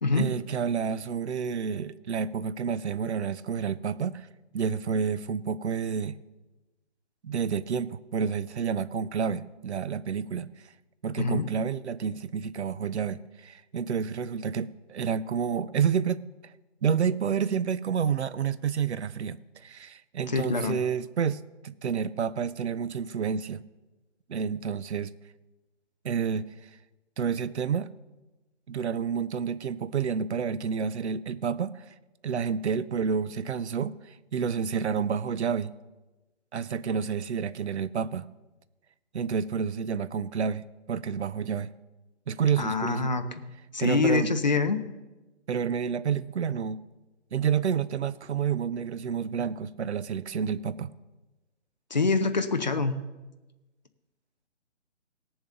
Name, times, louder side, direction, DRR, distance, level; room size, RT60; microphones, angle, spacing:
voice 1, 0.1-4.3 4.5-6.2 7.2-10.5 11.0-16.2 16.8-23.6 24.3-25.1 26.0-26.7 27.2-27.9 28.7-31.9 32.2-35.7 36.5-38.3 39.1-41.7 42.3-43.1 43.8-44.3 45.5-46.8 47.3-50.9, right 7 dB, 65° right, 16 dB, 0.6 m, -29 dB
voice 2, 20.3-20.8 42.6-43.2 43.7-44.8 51.9-53.0, left 4 dB, 40° left, 8 dB, 0.6 m, -25 dB
18.0 x 7.1 x 3.8 m, 1.1 s
hypercardioid pair, 175°, 35 cm